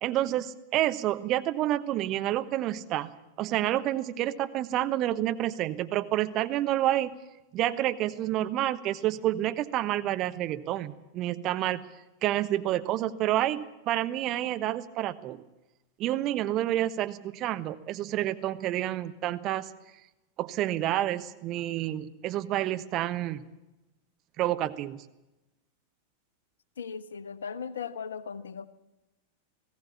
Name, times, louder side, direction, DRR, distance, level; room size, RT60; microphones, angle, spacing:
voice 1, 0.0-3.1 3.4-7.2 7.5-11.8 12.2-15.4 16.0-19.7 20.4-23.4 24.4-25.0, right 13 dB, 35° right, 10 dB, 1.1 m, -29 dB
voice 2, 26.8-28.7, left 6 dB, 65° left, 15 dB, 1.1 m, -37 dB
19.5 x 16.5 x 8.4 m, 0.99 s
figure-of-eight pair, 90°, 0 cm